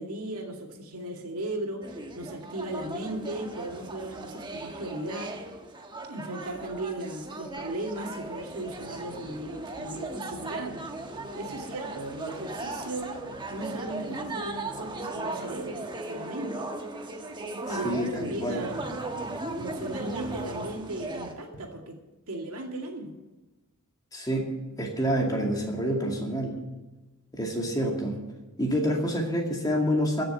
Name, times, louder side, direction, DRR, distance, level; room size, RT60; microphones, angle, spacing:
voice 1, 0.0-5.4 6.1-10.8 11.4-13.2 13.5-16.7 17.6-19.0 19.6-22.0 22.3-23.2, right 1 dB, 80° right, 2 dB, 2.3 m, -36 dB
sound 1, 1.8-21.3, right 2 dB, 20° right, 1.2 m, -37 dB
voice 2, 24.1-24.5 24.8-26.6 27.3-28.2 28.6-30.2, equal, 15° left, 0 dB, 2.3 m, -27 dB
15.0 x 6.8 x 9.0 m, 1.1 s
head